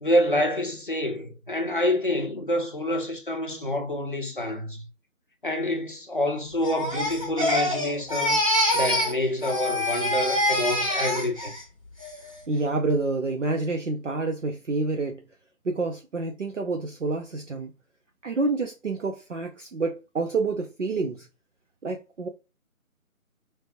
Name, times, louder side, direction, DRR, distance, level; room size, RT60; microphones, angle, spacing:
voice 1, 0.0-4.8 5.4-8.4 8.7-11.5, left 1 dB, 40° left, 0.6 m, -27 dB
Crying sobbing, 6.6-9.2 9.4-11.6 12.0-12.4, left 1 dB, 25° right, 0.8 m, -25 dB
voice 2, 12.5-15.2 15.6-17.7 18.2-21.3 21.8-22.3, right 3 dB, 60° right, 0.6 m, -28 dB
3.3 x 3.3 x 2.7 m
figure-of-eight pair, 160°, 42 cm